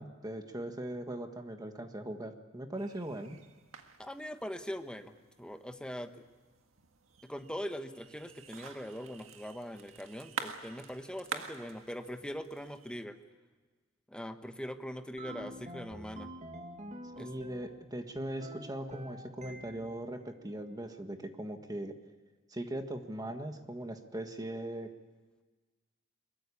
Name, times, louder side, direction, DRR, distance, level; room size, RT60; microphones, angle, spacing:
voice 1, 0.0-3.4 17.2-21.9 22.5-24.9, right 1 dB, 20° right, 6 dB, 1.6 m, -40 dB
sound 1, 2.8-13.1, right 5 dB, 80° right, 1.8 m, -48 dB
voice 2, 4.0-6.2 7.2-13.2 14.1-16.3 17.1-17.3, equal, 5° left, 7 dB, 1.2 m, -42 dB
sound 2, 15.2-17.8 18.2-20.0, right 1 dB, 35° right, 2.3 m, -47 dB
23.0 x 22.0 x 8.5 m, 1.3 s
head